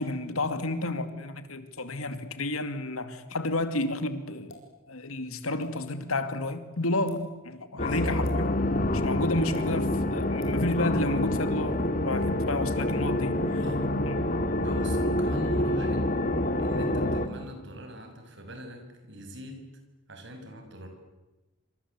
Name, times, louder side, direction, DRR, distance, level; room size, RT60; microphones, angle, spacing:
voice 1, 0.0-4.5 4.9-8.5 8.9-13.6 14.0-14.1, left 2 dB, 90° left, 2.5 m, -31 dB
sound 1, 4.5-4.7 5.6-5.7 6.9-7.2 8.2-8.4 9.5-9.7 10.4-10.6, left 2 dB, 65° left, 6.3 m, -46 dB
voice 2, 7.7-8.1 13.6-14.2 14.5-16.1 16.6-19.6 20.1-20.9, right 1 dB, 55° right, 6.2 m, -42 dB
sound 2, 7.8-17.3, left 1 dB, 40° left, 2.1 m, -27 dB
27.0 x 26.0 x 8.4 m
head